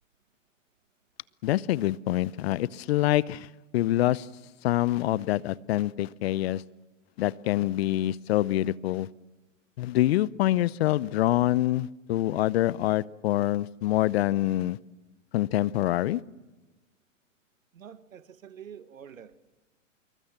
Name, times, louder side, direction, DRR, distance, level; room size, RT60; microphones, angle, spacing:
voice 1, 1.4-3.5 3.7-4.3 4.6-6.6 7.2-9.1 9.8-14.8 15.3-16.2, left 15 dB, 55° left, 0.7 m, -25 dB
voice 2, 17.7-19.4, right 8 dB, 85° right, 1.5 m, -47 dB
26.0 x 23.0 x 7.4 m
hypercardioid pair, 120°, 39 cm